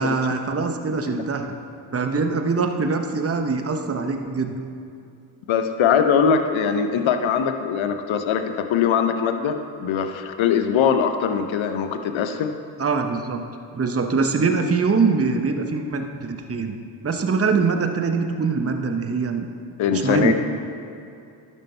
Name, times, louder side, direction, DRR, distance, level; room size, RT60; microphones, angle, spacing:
voice 1, 0.0-1.5 1.9-4.6 12.8-13.4 13.7-16.8 17.0-19.5 19.9-20.3, right 4 dB, 30° right, 5 dB, 1.0 m, -23 dB
voice 2, 5.5-12.5 19.8-20.3, left 7 dB, 70° left, 7 dB, 0.9 m, -21 dB
12.0 x 6.4 x 4.5 m, 2.6 s
hypercardioid pair, 40°, 49 cm